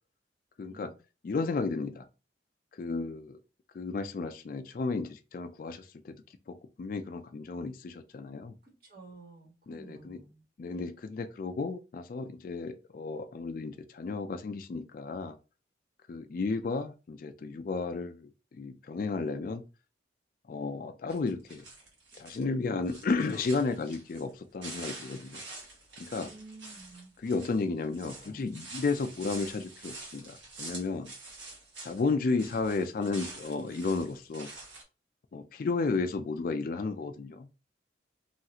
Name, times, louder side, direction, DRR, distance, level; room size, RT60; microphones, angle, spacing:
voice 1, 0.6-0.9 1.2-2.1 2.7-3.4 3.7-6.2 6.5-8.6 9.7-10.2 10.6-15.4 16.1-19.6 20.5-21.6 22.2-25.4 26.0-26.3 27.2-31.1 31.8-34.5 35.3-37.5, left 4 dB, 50° left, 0.3 m, -33 dB
voice 2, 8.6-10.4 26.3-27.1 28.0-28.4, right 3 dB, 50° right, 1.2 m, -51 dB
sound 1, 21.1-22.4 22.8-24.3 24.6-32.1 32.4-34.8, right 2 dB, 90° right, 1.3 m, -46 dB
3.1 x 2.4 x 2.8 m
head